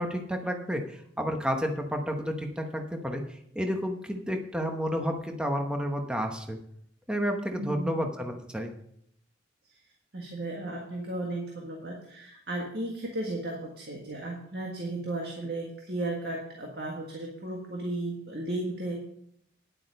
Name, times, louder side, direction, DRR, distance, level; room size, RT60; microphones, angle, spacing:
voice 1, 0.0-3.2 3.5-6.6 7.1-8.7, equal, 5° right, 3 dB, 1.0 m, -31 dB
voice 2, 7.6-8.1 9.7-9.8 10.1-19.0, right 2 dB, 55° right, 0 dB, 1.7 m, -35 dB
10.0 x 8.4 x 5.2 m, 0.71 s
head